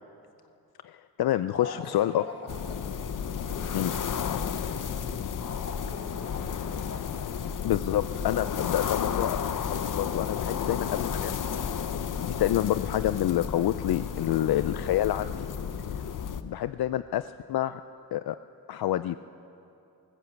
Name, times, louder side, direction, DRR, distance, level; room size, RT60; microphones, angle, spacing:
voice 1, 0.8-2.2 3.7-3.9 7.6-9.4 9.7-11.4 12.2-15.5 16.4-17.8 18.1-18.4 18.7-19.2, left 13 dB, 80° left, 12 dB, 0.5 m, -28 dB
voice 2, 1.5-4.3 4.8-7.1, left 3 dB, 40° left, 0 dB, 3.0 m, -43 dB
sound 1, 2.5-16.4, left 7 dB, 55° left, 0.9 m, -32 dB
20.0 x 19.0 x 8.2 m, 2.7 s
wide cardioid pair, 165°, 37 cm